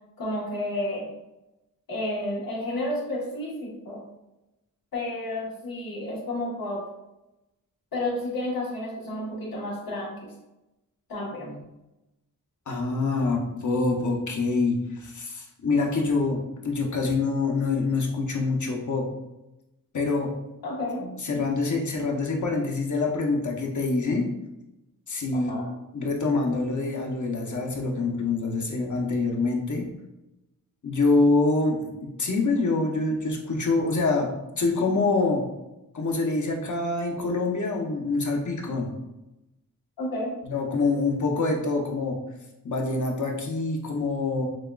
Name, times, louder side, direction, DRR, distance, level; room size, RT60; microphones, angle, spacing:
voice 1, 0.2-1.1 1.9-4.0 4.9-6.8 7.9-10.3 11.1-11.6 20.6-21.2 25.3-25.7 40.0-40.4, left 1 dB, 85° left, -4 dB, 1.3 m, -31 dB
voice 2, 12.7-19.1 19.9-20.3 21.2-24.3 25.1-25.5 25.9-29.8 30.8-34.3 34.6-35.4 35.9-38.9 40.4-42.2 42.6-44.5, left 3 dB, 55° left, 0 dB, 0.9 m, -25 dB
6.2 x 2.3 x 2.3 m, 0.94 s
wide cardioid pair, 75°, 35 cm